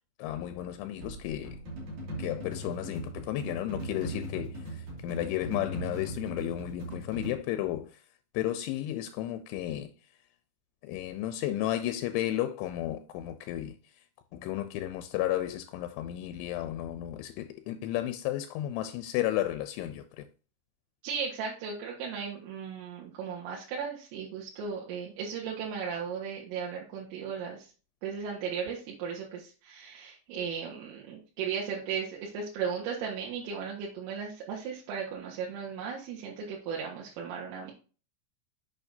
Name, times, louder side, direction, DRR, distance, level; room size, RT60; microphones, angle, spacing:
voice 1, 0.2-1.6 2.2-8.0 8.3-9.9 10.8-13.8 14.3-20.3, left 13 dB, 85° left, 2.9 m, -33 dB
sound 1, 1.0-7.3, right 1 dB, 45° right, 3.3 m, -39 dB
voice 2, 21.0-27.7 28.0-37.7, right 6 dB, 90° right, 4.1 m, -36 dB
8.7 x 6.4 x 2.7 m
omnidirectional pair, 5.7 m